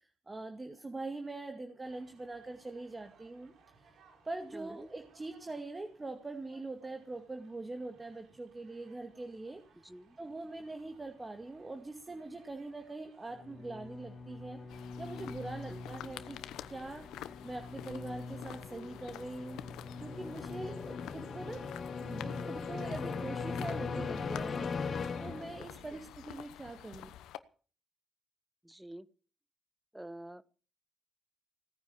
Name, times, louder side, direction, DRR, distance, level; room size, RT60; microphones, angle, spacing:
voice 1, 0.0-4.0 4.2-9.6 10.2-16.4 16.7-19.6 20.0-27.2, right 2 dB, 25° right, 6 dB, 2.3 m, -43 dB
sound 1, 1.8-17.7, right 4 dB, 75° right, 4.0 m, -66 dB
voice 2, 9.8-10.2 15.7-15.8 28.7-29.0 29.9-30.4, right 1 dB, 10° right, 17 dB, 1.1 m, -47 dB
sound 2, 13.3-26.0, left 4 dB, 50° left, 1.9 m, -40 dB
sound 3, 14.7-27.4, left 12 dB, 85° left, 1.0 m, -49 dB
17.5 x 9.6 x 7.4 m, 0.41 s
supercardioid pair, 60°, 0 cm